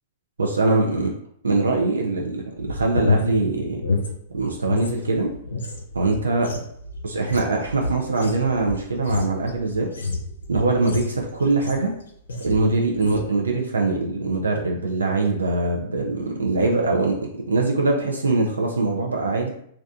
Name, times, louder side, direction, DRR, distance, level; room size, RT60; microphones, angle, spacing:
voice 1, 0.4-1.1 1.4-3.8 4.3-5.3 5.9-6.5 7.0-9.9 10.5-11.9 12.4-19.5, right 3 dB, 90° right, 0 dB, 0.4 m, -22 dB
sound 1, 2.6-4.9 5.2-11.9 12.3-12.7 12.9-13.3, left 2 dB, 85° left, 0.5 m, -28 dB
2.6 x 2.2 x 2.3 m, 0.69 s
hypercardioid pair, 115°, 0 cm